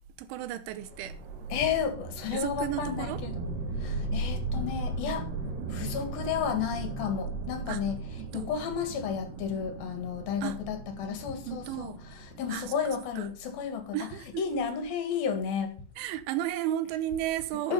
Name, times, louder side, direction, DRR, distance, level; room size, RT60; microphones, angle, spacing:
voice 1, 0.2-1.2 2.3-3.2 5.6-5.8 7.7-7.8 8.2-8.5 10.4-10.6 11.4-12.0 12.5-13.3 13.9-14.5 16.0-17.7, right 12 dB, 90° right, 3.3 m, -34 dB
sound 1, 0.7-13.8, right 2 dB, 65° right, 4.5 m, -37 dB
voice 2, 1.5-3.3 3.8-5.3 5.7-8.0 8.3-11.9 12.4-14.0 14.4-15.7 17.6-17.7, left 7 dB, 60° left, 3.1 m, -32 dB
12.5 x 7.1 x 5.6 m
omnidirectional pair, 5.4 m